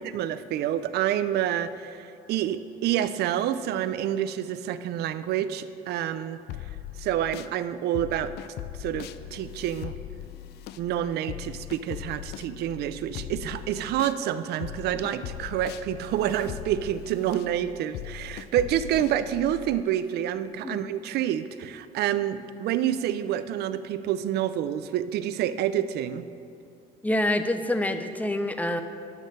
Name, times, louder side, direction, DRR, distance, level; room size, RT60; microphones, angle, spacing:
voice 1, 0.0-6.4 7.0-8.3 8.8-9.9 10.8-26.3, right 11 dB, 75° right, 13 dB, 0.5 m, -28 dB
sound 1, 6.5-7.5 7.9-14.2 14.6-19.8, left 13 dB, 75° left, 0.4 m, -39 dB
voice 2, 27.0-28.8, left 1 dB, 10° left, 9 dB, 0.6 m, -26 dB
9.8 x 6.5 x 6.6 m, 2.6 s
cardioid pair, 110°, 17 cm